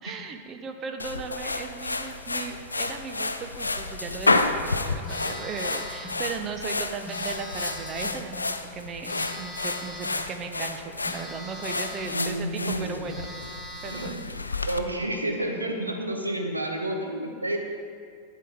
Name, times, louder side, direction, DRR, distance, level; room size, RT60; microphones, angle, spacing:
voice 1, 0.0-13.3 13.8-14.1, right 5 dB, 30° right, 6 dB, 0.8 m, -37 dB
sound 1, 1.0-14.8, left 3 dB, 80° left, 0.5 m, -30 dB
Telephone, 5.0-6.2 7.0-8.2 9.0-10.2 11.0-12.2 12.7-12.8 13.0-14.2, equal, 5° right, 2.1 m, -41 dB
voice 2, 12.1-13.1 13.9-14.2 14.7-17.6, right 1 dB, 85° right, 2 dB, 1.2 m, -30 dB
11.5 x 8.6 x 3.6 m, 2.1 s
figure-of-eight pair, 90°, 0 cm